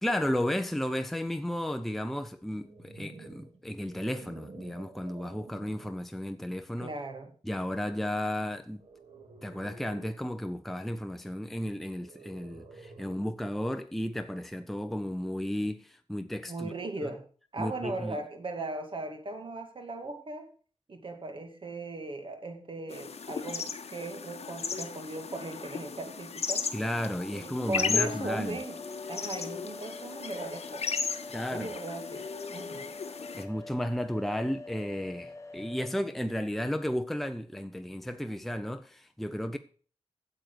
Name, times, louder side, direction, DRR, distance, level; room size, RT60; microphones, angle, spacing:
voice 1, 0.0-6.9 7.4-8.9 9.4-16.7 17.0-17.1 17.6-18.2 26.7-28.6 31.3-31.7 33.3-39.6, equal, ahead, 0.6 m, -33 dB
sound 1, 2.4-6.1 6.7-7.0 8.8-10.3 12.0-13.4, right 3 dB, 85° right, 2.3 m, -50 dB
voice 2, 6.8-7.3 16.5-17.2 17.5-20.5 20.9-26.6 27.3-28.8 29.1-30.9 31.5-32.9, right 2 dB, 50° right, 2.2 m, -38 dB
sound 2, 22.9-33.4, left 5 dB, 70° left, 1.1 m, -36 dB
sound 3, 28.4-35.9, left 3 dB, 25° left, 1.1 m, -45 dB
9.2 x 7.7 x 6.8 m
wide cardioid pair, 135°, 11 cm